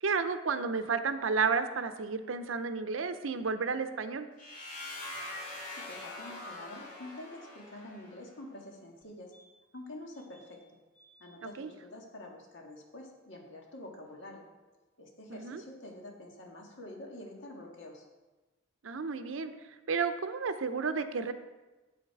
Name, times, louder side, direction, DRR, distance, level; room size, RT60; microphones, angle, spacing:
voice 1, 0.0-4.3 11.4-11.7 15.3-15.6 18.8-19.5 19.9-21.3, right 5 dB, 85° right, 10 dB, 0.6 m, -32 dB
sound 1, 4.4-8.2, left 2 dB, 45° left, 2.8 m, -43 dB
voice 2, 5.7-9.3 9.7-10.6 11.2-14.5 15.0-18.1, left 1 dB, 65° left, 0 dB, 1.8 m, -47 dB
sound 2, 9.0-9.1 9.3-9.8 10.1-10.6 10.9-11.4 13.8-13.9 14.1-14.2, right 1 dB, 15° left, 1.9 m, -63 dB
8.1 x 7.8 x 4.7 m, 1.2 s
head